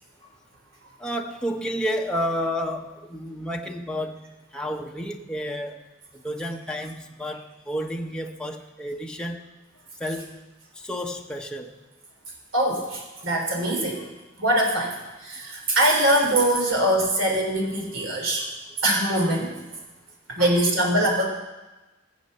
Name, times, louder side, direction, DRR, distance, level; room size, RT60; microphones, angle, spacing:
voice 1, 1.0-4.3 4.5-5.8 6.1-9.4 10.0-10.4 10.7-11.7 20.4-20.6, equal, 5° left, 0 dB, 0.9 m, -31 dB
voice 2, 12.5-14.0 14.4-14.9 15.2-18.4 18.8-19.6 20.3-21.3, right 1 dB, 70° right, 1 dB, 3.7 m, -22 dB
17.0 x 8.1 x 6.7 m, 1.1 s
head